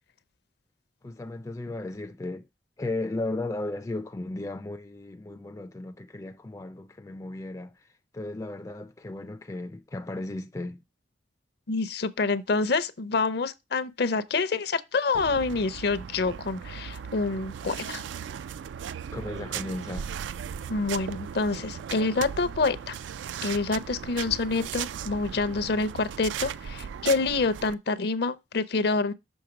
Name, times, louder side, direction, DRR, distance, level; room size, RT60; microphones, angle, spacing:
voice 1, 1.0-2.5 2.8-10.8 19.1-20.1, left 2 dB, 20° left, 0.3 m, -35 dB
voice 2, 11.7-18.0 20.7-23.0 23.4-29.1, left 3 dB, 60° left, 0.6 m, -27 dB
sound 1, 15.1-27.7, right 8 dB, 85° right, 0.3 m, -37 dB
6.3 x 3.4 x 5.9 m
head